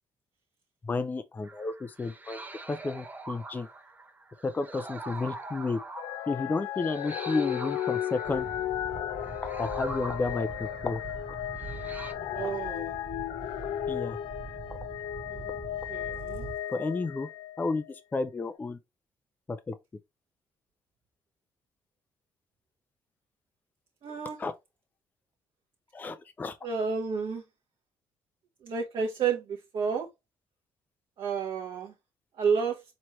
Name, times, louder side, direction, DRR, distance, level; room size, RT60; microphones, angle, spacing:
voice 1, 0.8-2.4 2.7-3.7 4.4-5.8 6.3-8.5 9.6-11.0 12.4-12.5 13.9-14.2 16.7-17.3 17.6-18.8 19.5-19.7 24.4-24.5 25.9-26.6, left 3 dB, 20° left, 0.4 m, -32 dB
sound 1, 1.4-12.1, right 2 dB, 20° right, 0.7 m, -44 dB
sound 2, 6.0-17.9 18.5-18.6, left 12 dB, 80° left, 0.4 m, -35 dB
sound 3, 8.2-16.6, right 4 dB, 40° right, 1.2 m, -44 dB
voice 2, 12.3-12.9 15.3-15.5 15.9-16.5 24.0-24.4 26.6-27.4 28.6-30.1 31.2-31.9 32.4-32.8, right 6 dB, 65° right, 1.0 m, -30 dB
4.4 x 3.1 x 3.0 m
cardioid pair, 110°, 9 cm